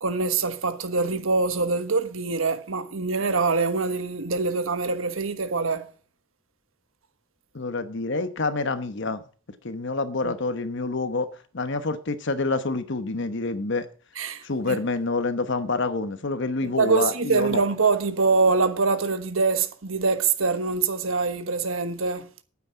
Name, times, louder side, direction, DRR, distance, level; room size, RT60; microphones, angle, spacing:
voice 1, 0.0-5.9 10.2-10.3 14.2-14.8 16.6-22.3, right 4 dB, 75° right, 1.3 m, -24 dB
voice 2, 7.5-9.2 9.6-11.3 11.5-13.9 14.4-17.6, left 3 dB, 60° left, 1.1 m, -27 dB
9.6 x 8.3 x 6.1 m
head